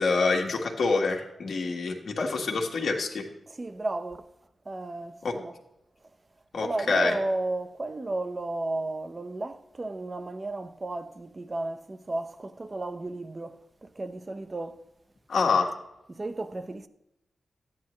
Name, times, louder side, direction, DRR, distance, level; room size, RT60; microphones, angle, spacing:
voice 1, 0.0-3.3 5.2-5.4 6.5-7.2 15.3-15.7, left 4 dB, 75° left, 1.5 m, -26 dB
voice 2, 3.5-4.2 4.7-5.5 6.6-14.8 16.1-16.9, right 2 dB, 30° right, 0.7 m, -33 dB
14.0 x 9.7 x 3.1 m
wide cardioid pair, 90°, 0 cm